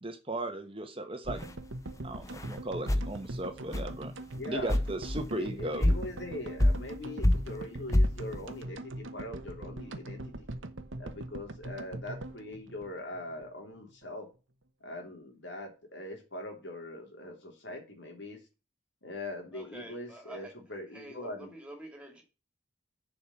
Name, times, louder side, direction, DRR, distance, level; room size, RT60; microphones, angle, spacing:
voice 1, 0.0-1.4 2.0-4.1 4.4-5.8, right 1 dB, 30° right, 1.1 m, -36 dB
sound 1, 1.3-1.5 2.2-2.5 2.9-3.1 3.7-3.9 4.4-4.5 4.7-5.2 5.8-6.0 6.6-7.0 7.2-7.6 7.9-8.2, left 1 dB, 15° left, 0.6 m, -26 dB
sound 2, 1.3-13.5 13.8-13.9 14.0-14.1, right 1 dB, 90° right, 1.1 m, -42 dB
voice 2, 4.3-4.7 5.3-10.5 11.0-14.3 14.8-18.4 19.0-21.5, left 1 dB, 70° left, 3.3 m, -42 dB
voice 3, 19.5-20.5 20.9-22.2, right 1 dB, 5° right, 2.6 m, -47 dB
7.2 x 5.2 x 7.2 m
head